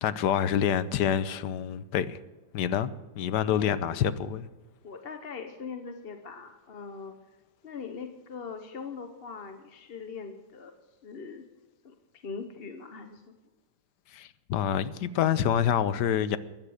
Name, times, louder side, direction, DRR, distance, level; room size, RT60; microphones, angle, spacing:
voice 1, 0.0-2.2 2.5-4.5 14.1-16.4, left 9 dB, 80° left, 1.3 m, -27 dB
voice 2, 3.5-4.0 4.8-7.2 7.6-10.7 11.0-11.4 11.8-13.2, left 5 dB, 40° left, 1.0 m, -41 dB
15.0 x 11.0 x 6.4 m
omnidirectional pair, 1.8 m